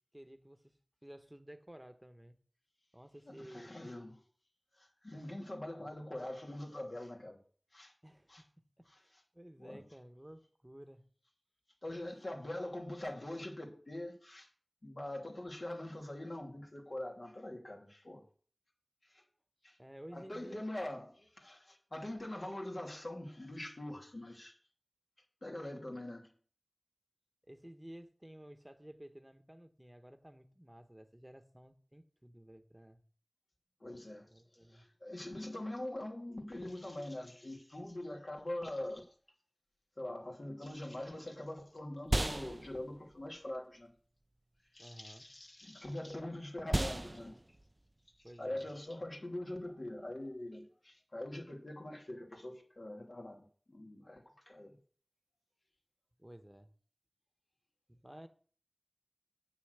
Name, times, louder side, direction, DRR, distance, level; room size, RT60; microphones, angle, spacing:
voice 1, 0.1-2.4 2.9-3.8 5.8-5.9 8.0-8.3 8.8-11.0 11.9-12.0 19.8-21.0 27.5-33.0 34.3-34.8 44.8-45.3 48.2-48.7 56.2-56.7 57.9-58.3, right 1 dB, 15° right, 1.2 m, -54 dB
voice 2, 3.2-4.2 4.8-7.4 7.7-7.9 8.3-8.4 8.9-9.0 9.6-9.8 11.8-14.5 14.8-18.2 19.1-19.2 19.6-19.8 20.1-24.5 25.4-26.3 33.8-34.3 34.7-39.1 40.0-43.9 44.7-47.4 48.4-54.8, left 1 dB, 65° left, 2.8 m, -43 dB
sound 1, 41.7-50.4, right 1 dB, 35° right, 0.5 m, -40 dB
8.7 x 7.0 x 8.1 m
wide cardioid pair, 50°, 0 cm